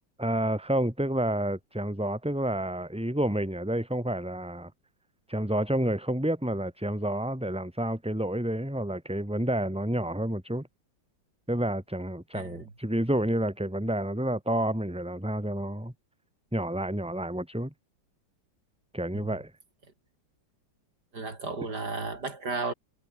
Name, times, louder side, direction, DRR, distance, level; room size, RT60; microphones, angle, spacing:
voice 1, 0.2-4.7 5.3-10.7 11.5-15.9 16.5-17.7 18.9-19.5, right 1 dB, 5° right, 2.5 m, -29 dB
voice 2, 12.3-12.7 19.1-19.3 21.1-22.7, right 3 dB, 60° right, 4.9 m, -34 dB
omnidirectional pair, 2.0 m